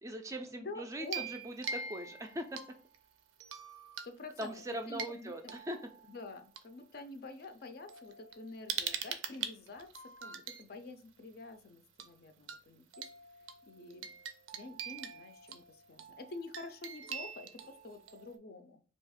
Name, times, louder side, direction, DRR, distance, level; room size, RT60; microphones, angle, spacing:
voice 1, 0.0-2.6 4.4-5.8, right 1 dB, 15° right, 5 dB, 0.3 m, -41 dB
voice 2, 0.6-1.3 4.0-4.5 4.9-5.5 6.0-9.9 10.2-13.1 13.7-14.1 14.5-18.8, left 3 dB, 50° left, 7 dB, 0.4 m, -48 dB
sound 1, 1.0-3.0 3.4-4.1 4.4-6.6 7.4-7.5 7.9-10.6 12.0-12.2 12.5-12.6 12.9-18.4, right 6 dB, 90° right, 0.4 m, -43 dB
2.8 x 2.3 x 4.1 m, 0.39 s
head